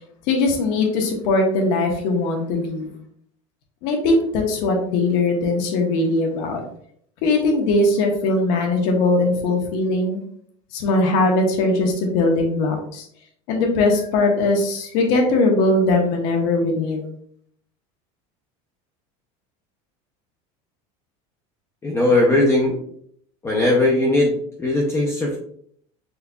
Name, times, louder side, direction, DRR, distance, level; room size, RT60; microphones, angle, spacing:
voice 1, 0.3-2.9 3.8-6.6 7.2-10.2 10.7-13.1 13.5-17.0, left 2 dB, 60° left, 2 dB, 1.0 m, -20 dB
voice 2, 21.8-22.8 23.4-24.3 24.6-25.4, left 2 dB, 15° left, -2 dB, 0.6 m, -18 dB
6.6 x 2.8 x 2.2 m, 0.64 s
cardioid pair, 160°, 17 cm